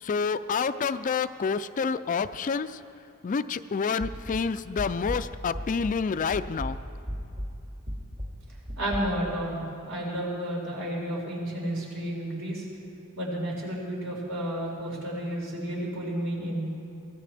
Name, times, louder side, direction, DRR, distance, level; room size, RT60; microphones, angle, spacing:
voice 1, 0.0-2.8 3.2-6.8, left 5 dB, 35° left, 13 dB, 0.3 m, -28 dB
sound 1, 4.0-6.1 6.3-9.0, equal, 40° right, 2.2 m, -36 dB
voice 2, 8.8-12.6 13.2-16.7, right 1 dB, 65° right, -4 dB, 4.9 m, -31 dB
23.5 x 17.0 x 3.4 m, 2.8 s
head